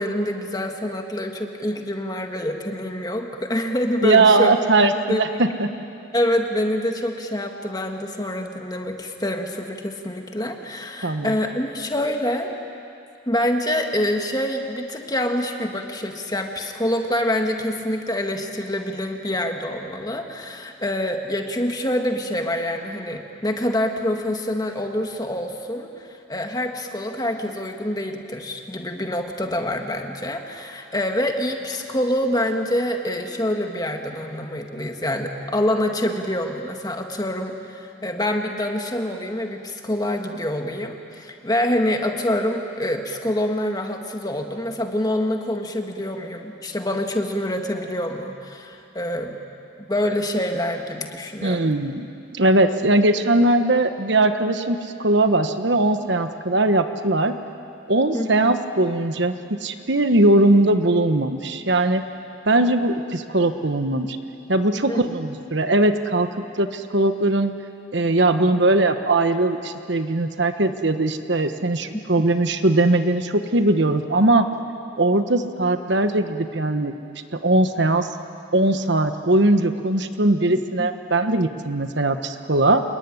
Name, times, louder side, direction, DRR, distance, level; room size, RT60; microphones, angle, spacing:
voice 1, 0.0-4.5 4.8-5.2 6.1-12.5 13.3-49.3 49.9-51.8 58.1-58.5 64.9-65.0 80.8-80.9, left 1 dB, 20° left, 3 dB, 1.9 m, -26 dB
voice 2, 4.0-5.3 5.6-5.7 11.0-11.3 51.4-52.1 52.3-57.3 57.9-59.3 59.6-62.0 62.5-64.1 64.5-66.3 66.6-67.5 67.9-74.5 75.0-76.9 77.3-78.1 78.5-82.8, right 2 dB, 60° right, 8 dB, 1.3 m, -20 dB
27.0 x 22.5 x 9.9 m, 2.6 s
head